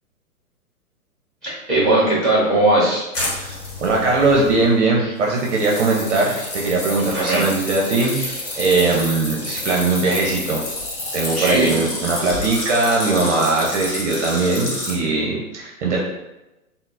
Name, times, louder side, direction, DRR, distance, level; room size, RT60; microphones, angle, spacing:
voice 1, 1.4-3.0 7.0-7.5 11.4-11.7, right 2 dB, ahead, -8 dB, 1.2 m, -18 dB
sound 1, 3.1-4.7 5.3-14.9, left 2 dB, 35° left, 1.2 m, -29 dB
voice 2, 3.3-10.7 11.1-16.0, right 3 dB, 50° right, -2 dB, 0.6 m, -20 dB
3.8 x 2.0 x 2.5 m, 0.98 s
figure-of-eight pair, 120°, 45 cm